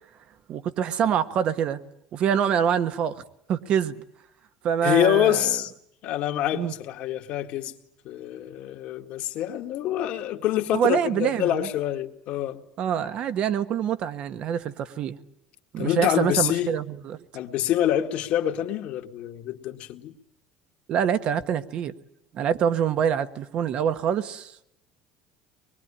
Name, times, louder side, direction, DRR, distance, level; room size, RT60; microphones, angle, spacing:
voice 1, 0.5-1.8 2.1-3.2 3.5-4.0 4.6-5.5 6.5-6.7 10.7-11.7 12.8-15.2 15.7-17.2 20.9-21.9 22.3-24.6, right 8 dB, 50° right, 1.3 m, -25 dB
voice 2, 4.8-5.7 6.0-7.7 8.0-12.6 15.8-16.7 17.3-20.1, left 12 dB, 60° left, 2.0 m, -26 dB
24.0 x 21.5 x 10.0 m
cardioid pair, 125°, 2 cm